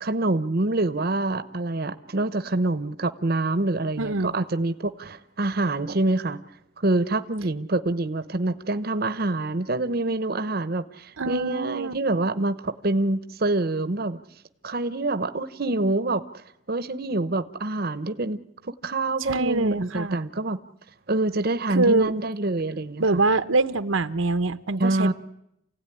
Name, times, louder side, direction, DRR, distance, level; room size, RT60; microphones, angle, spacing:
voice 1, 0.0-6.4 6.8-14.2 14.6-18.4 18.6-20.6 21.1-23.2 24.8-25.1, right 2 dB, 50° right, 12 dB, 0.9 m, -26 dB
voice 2, 4.0-4.3 11.2-11.9 19.2-20.2 21.7-22.1 23.0-25.1, right 3 dB, 80° right, 11 dB, 0.9 m, -24 dB
28.5 x 16.5 x 10.0 m, 0.82 s
head